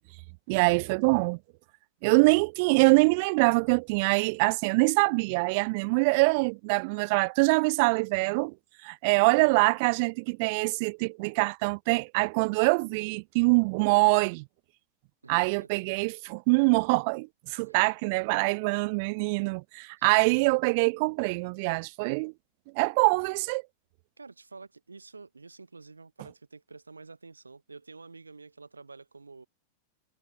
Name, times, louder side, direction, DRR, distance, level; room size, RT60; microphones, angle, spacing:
voice 1, 0.5-1.4 2.0-8.5 8.8-14.4 15.3-22.3 22.7-23.6, right 30 dB, 45° right, 0.4 m, -24 dB
voice 2, 15.2-15.9 17.6-17.8 24.2-29.5, right 4 dB, 80° right, 6.4 m, -49 dB
figure-of-eight pair, 90°, 0 cm